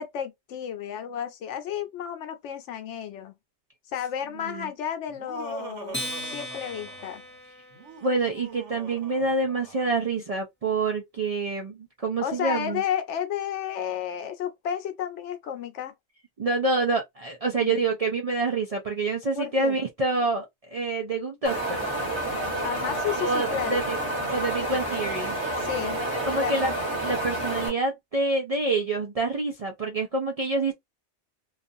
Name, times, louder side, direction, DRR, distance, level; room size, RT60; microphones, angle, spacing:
voice 1, 0.0-3.3 3.9-7.2 12.2-15.9 17.6-17.8 19.3-19.8 22.6-23.8 25.6-26.0 26.4-26.7, left 9 dB, 80° left, 0.9 m, -32 dB
voice 2, 4.3-4.7 8.0-12.8 16.4-21.9 23.1-25.3 26.2-26.7 27.0-30.7, right 3 dB, 55° right, 0.4 m, -27 dB
Laughter, 5.1-7.2 7.7-10.1, right 5 dB, 75° right, 1.2 m, -43 dB
Acoustic guitar, 5.9-8.6, equal, 10° left, 0.9 m, -38 dB
Wind, 21.4-27.7, right 1 dB, 10° right, 1.2 m, -29 dB
2.4 x 2.4 x 2.6 m
omnidirectional pair, 1.2 m